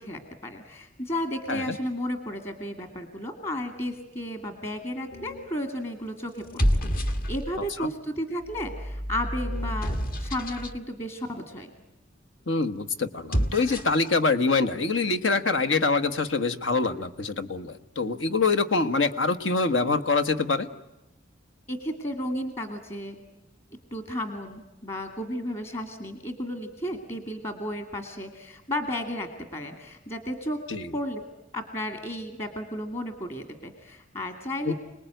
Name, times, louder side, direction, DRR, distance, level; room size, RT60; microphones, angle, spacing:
voice 1, 0.0-11.7 21.7-23.2 23.9-30.6 30.9-31.2 31.5-34.7, left 1 dB, 30° left, 7 dB, 2.2 m, -33 dB
sound 1, 5.1-5.5 6.4-7.7 8.5-10.8 13.1-14.1, equal, 45° left, 1.6 m, -29 dB
voice 2, 12.5-20.7 30.7-30.9 34.6-34.7, left 3 dB, 70° left, 10 dB, 1.4 m, -25 dB
28.0 x 20.0 x 9.2 m, 0.98 s
head